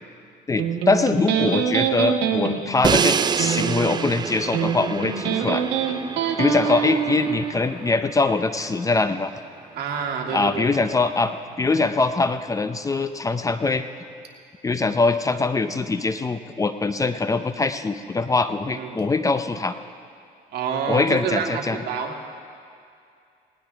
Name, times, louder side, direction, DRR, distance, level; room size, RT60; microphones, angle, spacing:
voice 1, 0.5-5.7 6.4-9.3 10.3-13.8 14.6-19.7 20.9-21.8, left 3 dB, 20° left, 10 dB, 0.6 m, -23 dB
Electric guitar, 0.6-7.6, right 8 dB, 85° right, 1.3 m, -25 dB
Crash cymbal, 2.8-8.8, right 6 dB, 25° right, 0.4 m, -28 dB
voice 2, 6.6-7.2 9.8-10.7 18.7-19.0 20.5-22.1, right 6 dB, 70° right, 1 dB, 2.1 m, -28 dB
20.0 x 18.0 x 3.5 m, 2.4 s
cardioid pair, 110°, 17 cm